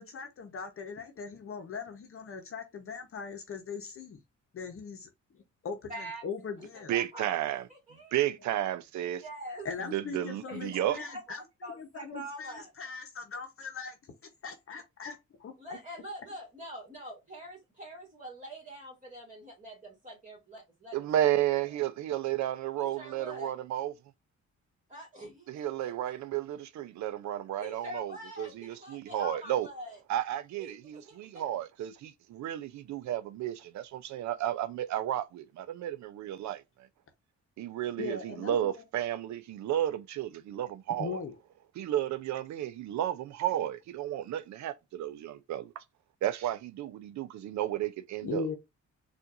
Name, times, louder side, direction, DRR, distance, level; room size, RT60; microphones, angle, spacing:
voice 1, 0.0-4.2 4.5-5.1 5.6-6.9 9.6-11.4 11.8-14.0 14.4-15.8 38.0-38.8 41.0-41.3 48.2-48.6, left 5 dB, 45° left, 0.9 m, -40 dB
voice 2, 5.9-6.3 6.6-7.4 7.7-8.1 9.1-9.7 10.5-12.7 15.6-21.8 22.8-23.5 24.9-26.1 27.6-30.0 30.6-31.5, equal, 25° right, 2.1 m, -45 dB
voice 3, 6.9-7.6 8.1-9.2 9.9-11.0 20.9-23.9 25.5-28.1 28.4-29.7 30.1-36.9 37.6-41.2 41.8-45.8 46.2-48.5, right 12 dB, 65° right, 0.5 m, -32 dB
4.3 x 2.5 x 2.5 m
cardioid pair, 90°, 30 cm